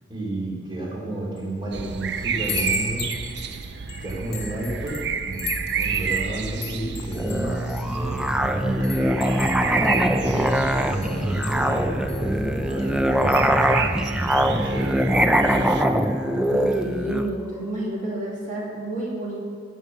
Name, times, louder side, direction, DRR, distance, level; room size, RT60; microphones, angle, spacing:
voice 1, 0.1-3.1 4.0-13.7 14.3-15.0, right 2 dB, 25° right, -4 dB, 2.7 m, -32 dB
Chime, 1.4-1.7 2.1-8.4 8.8-12.2 12.7-12.9 13.2-13.5, left 9 dB, 55° left, 1.1 m, -37 dB
sound 1, 1.7-15.8, right 6 dB, 60° right, 0.5 m, -31 dB
Musical instrument, 7.1-17.3, equal, 5° right, 0.4 m, -22 dB
voice 2, 16.2-19.4, right 1 dB, 40° right, -4 dB, 2.8 m, -30 dB
15.5 x 5.5 x 7.4 m, 2.2 s
head